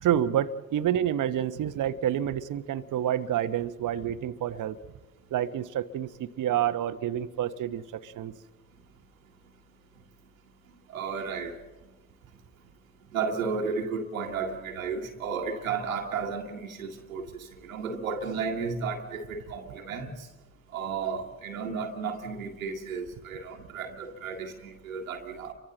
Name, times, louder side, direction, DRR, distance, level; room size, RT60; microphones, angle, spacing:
voice 1, 0.0-4.8 5.3-8.3, right 10 dB, 50° right, 1.1 m, -28 dB
voice 2, 10.9-11.6 13.1-20.3 20.7-25.5, right 5 dB, 90° right, 1.8 m, -33 dB
29.5 x 24.0 x 4.0 m
hypercardioid pair, 45°, 40 cm